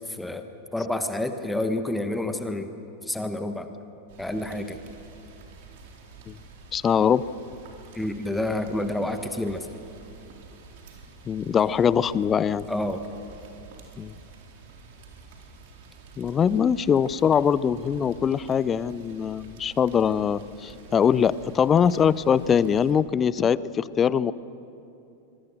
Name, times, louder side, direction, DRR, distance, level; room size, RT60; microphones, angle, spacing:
voice 1, 0.1-2.7 3.0-3.7 4.2-4.8 7.9-9.7 12.7-13.0, left 1 dB, 5° left, 8 dB, 1.3 m, -29 dB
Rain, 4.1-22.9, right 4 dB, 50° right, 3.8 m, -48 dB
voice 2, 6.7-7.2 11.3-12.6 14.0-14.1 16.2-24.3, left 7 dB, 25° left, 19 dB, 0.6 m, -22 dB
25.5 x 22.0 x 6.5 m, 2.7 s
figure-of-eight pair, 90°, 0 cm